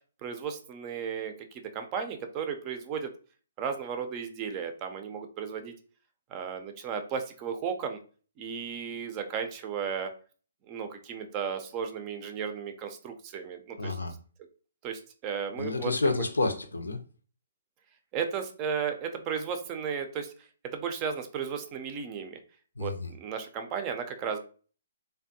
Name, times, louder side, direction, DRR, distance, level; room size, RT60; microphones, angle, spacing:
voice 1, 0.2-3.1 3.6-5.7 6.3-8.0 8.4-10.1 10.7-14.0 14.8-15.9 18.1-20.3 20.7-22.4 22.8-24.4, right 7 dB, 30° right, 7 dB, 0.5 m, -34 dB
voice 2, 13.8-14.2 15.6-17.0 22.8-23.1, left 3 dB, 90° left, 7 dB, 0.5 m, -29 dB
3.4 x 2.1 x 2.7 m, 0.39 s
hypercardioid pair, 135°, 0 cm